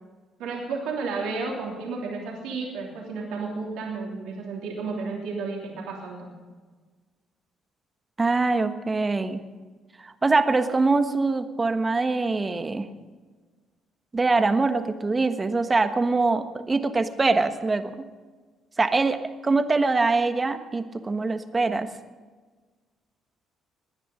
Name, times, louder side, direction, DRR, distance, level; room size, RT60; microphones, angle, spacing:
voice 1, 0.4-6.3, right 4 dB, 75° right, -2 dB, 3.1 m, -32 dB
voice 2, 8.2-9.4 10.0-12.9 14.1-18.0 18.8-21.9, right 3 dB, 30° right, 9 dB, 1.4 m, -23 dB
19.5 x 10.0 x 5.3 m, 1.4 s
hypercardioid pair, 50°, 0 cm